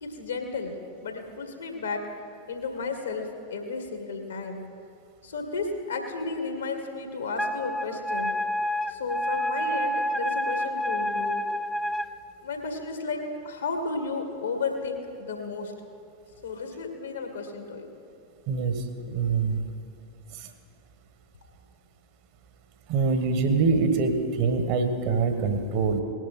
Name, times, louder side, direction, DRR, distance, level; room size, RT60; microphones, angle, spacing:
voice 1, 0.0-2.0 2.5-4.6 5.2-8.4 8.9-11.4 12.4-15.7 16.4-17.9, left 4 dB, 70° left, 4 dB, 1.8 m, -33 dB
Wind instrument woodwind instrument, 7.4-12.1, equal, ahead, 0.4 m, -28 dB
voice 2, 18.5-19.6 20.3-20.5 22.9-26.0, right 4 dB, 45° right, 7 dB, 1.4 m, -25 dB
19.0 x 11.0 x 4.2 m, 2.4 s
figure-of-eight pair, 90°, 0 cm